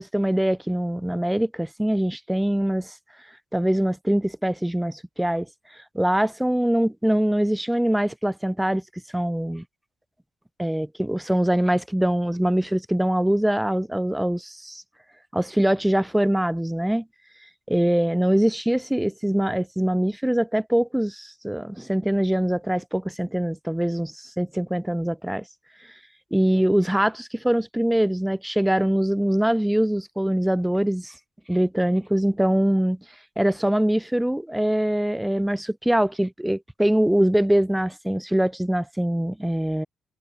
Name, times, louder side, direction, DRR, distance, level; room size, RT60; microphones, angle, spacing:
voice 1, 0.0-2.9 3.5-5.5 5.7-8.8 9.1-9.6 10.6-14.8 15.3-17.0 17.7-25.4 26.3-31.1 31.5-33.0 33.4-39.9, right 1 dB, 5° right, 0.3 m, -23 dB
cardioid pair, 135°, 0 cm